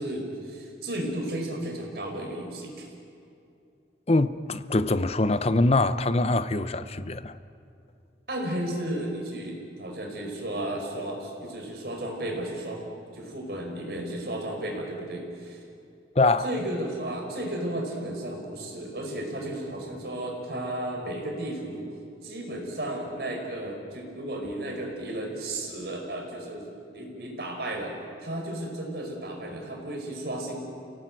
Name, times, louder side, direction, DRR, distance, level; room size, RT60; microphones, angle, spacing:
voice 1, 0.0-2.9 8.3-12.8 13.1-15.6 16.4-21.9 22.2-27.9 28.2-30.7, right 1 dB, 65° right, 5.2 m, -33 dB
voice 2, 4.1-7.3 16.2-16.5, left 2 dB, 35° left, 0.8 m, -23 dB
27.0 x 17.5 x 9.1 m
head